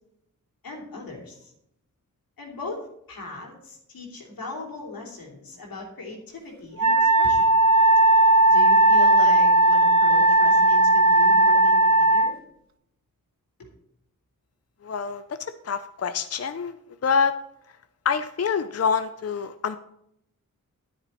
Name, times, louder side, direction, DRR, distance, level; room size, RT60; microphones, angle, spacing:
voice 1, 0.6-1.5 2.4-2.8 3.1-7.5 8.5-12.3, left 2 dB, 85° left, 0 dB, 3.0 m, -38 dB
Wind instrument woodwind instrument, 6.8-12.3, right 2 dB, 55° right, 0.8 m, -17 dB
voice 2, 14.8-15.2 15.6-16.7 17.0-17.3 18.0-19.8, left 6 dB, 45° left, 10 dB, 0.6 m, -25 dB
9.9 x 9.8 x 4.3 m, 0.77 s
cardioid pair, 55°, 34 cm